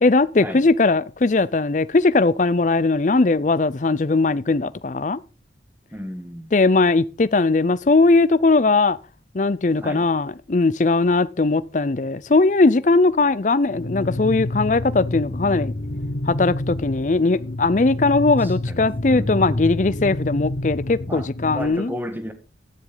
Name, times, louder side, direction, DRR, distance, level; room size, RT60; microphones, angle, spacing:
voice 1, 0.0-5.2 6.5-9.0 9.3-15.7 16.3-21.9, left 3 dB, 40° left, 0.5 m, -19 dB
voice 2, 5.9-6.5 9.8-10.0 18.4-19.7 21.1-21.3 21.5-22.3, equal, 10° right, 1.5 m, -34 dB
sound 1, 13.7-21.7, left 1 dB, 60° left, 0.9 m, -28 dB
13.0 x 10.5 x 4.0 m
head